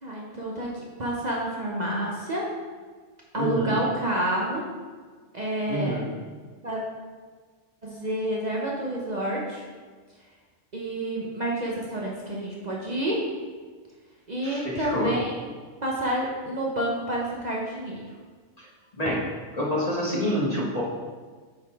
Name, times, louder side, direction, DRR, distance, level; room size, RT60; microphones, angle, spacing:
voice 1, 0.0-2.5 3.3-4.7 5.3-6.0 6.6-6.8 7.8-9.6 10.7-13.3 14.3-15.5 15.8-18.1, right 1 dB, 40° right, -3 dB, 1.0 m, -29 dB
voice 2, 3.3-3.8 5.7-6.1 14.4-15.1 18.6-18.7 19.0-19.3 19.5-20.8, equal, 35° left, -5 dB, 1.3 m, -27 dB
7.6 x 4.1 x 4.6 m, 1.5 s
omnidirectional pair, 1.3 m